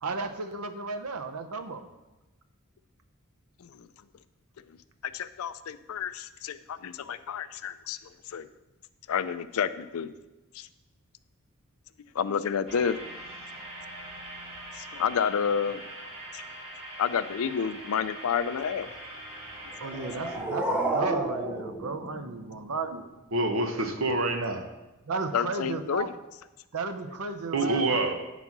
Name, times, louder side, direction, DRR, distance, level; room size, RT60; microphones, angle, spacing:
voice 1, 0.0-1.9 19.8-23.1 25.1-26.1 26.7-27.8, right 4 dB, 90° right, 8 dB, 0.7 m, -34 dB
voice 2, 5.0-8.0 8.3-8.5 9.1-10.1 10.5-10.7 12.1-13.0 14.7-15.8 16.3-16.4 17.0-18.9 25.3-26.1, left 7 dB, 70° left, 13 dB, 0.4 m, -30 dB
sound 1, 12.7-20.4, right 1 dB, 30° right, 2.7 m, -42 dB
sound 2, 19.8-22.8, right 1 dB, 5° right, 0.6 m, -31 dB
voice 3, 23.3-24.6 27.5-28.2, right 2 dB, 65° right, 5 dB, 1.0 m, -26 dB
9.6 x 4.1 x 5.9 m, 1.0 s
head